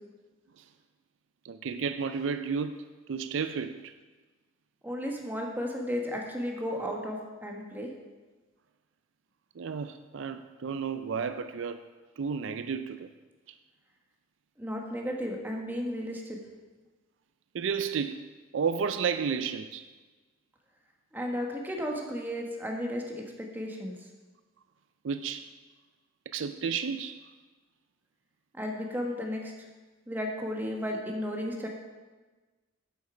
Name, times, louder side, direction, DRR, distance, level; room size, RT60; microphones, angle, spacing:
voice 1, 1.4-2.8 3.1-3.9 9.6-11.8 12.2-13.1 17.5-18.3 18.5-19.8 25.0-25.5 26.3-27.2, right 6 dB, 65° right, 0.4 m, -32 dB
voice 2, 4.8-7.9 14.6-16.4 21.1-24.1 28.5-29.7 30.1-31.7, equal, 10° right, 1.3 m, -34 dB
8.4 x 8.2 x 4.9 m
head